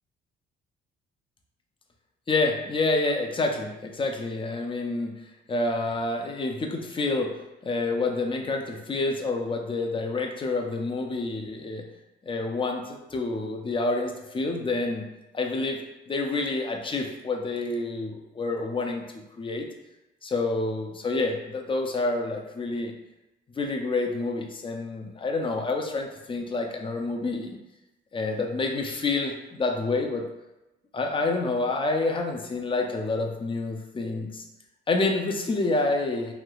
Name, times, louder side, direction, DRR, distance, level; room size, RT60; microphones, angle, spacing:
voice 1, 2.3-5.1 5.5-7.3 7.6-11.9 12.3-15.1 15.3-15.8 16.1-19.7 20.2-22.9 23.5-27.6 28.1-30.2 30.9-34.4 34.9-36.3, left 3 dB, 25° left, 2 dB, 0.5 m, -28 dB
3.2 x 2.7 x 2.3 m, 0.99 s
cardioid pair, 90°, 20 cm